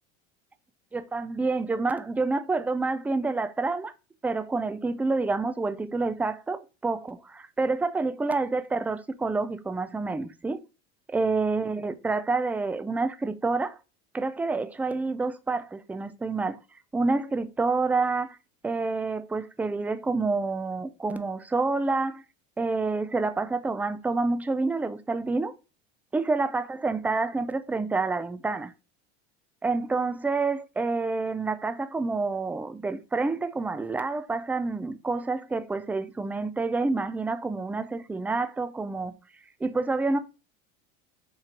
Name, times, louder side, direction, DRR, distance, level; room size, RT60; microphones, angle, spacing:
voice 1, 0.9-3.9 4.2-10.6 11.1-13.8 14.1-16.6 16.9-18.4 18.6-22.2 22.6-25.5 26.1-28.7 29.6-39.2 39.6-40.2, right 3 dB, 5° right, 0.4 m, -28 dB
4.5 x 2.8 x 3.7 m
supercardioid pair, 100°, 32 cm